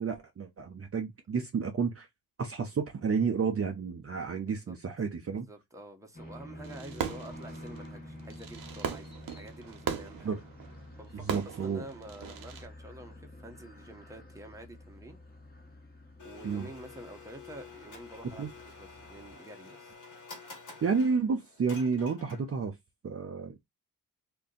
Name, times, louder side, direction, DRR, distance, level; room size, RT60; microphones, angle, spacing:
voice 1, 0.0-2.1 2.4-5.5 10.2-10.4 11.1-11.8 16.4-16.7 18.2-18.5 20.8-22.8 23.0-23.7, right 5 dB, 40° right, 0.6 m, -31 dB
voice 2, 4.4-4.8 5.3-10.4 11.0-15.2 16.2-20.0, right 1 dB, 10° right, 0.9 m, -48 dB
sound 1, 6.1-19.3, left 1 dB, 25° left, 1.3 m, -49 dB
Fireworks, 6.6-12.7, right 7 dB, 65° right, 0.8 m, -39 dB
Domestic sounds home sounds, 16.2-22.7, left 4 dB, 55° left, 1.2 m, -50 dB
2.5 x 2.2 x 3.7 m
cardioid pair, 55°, 38 cm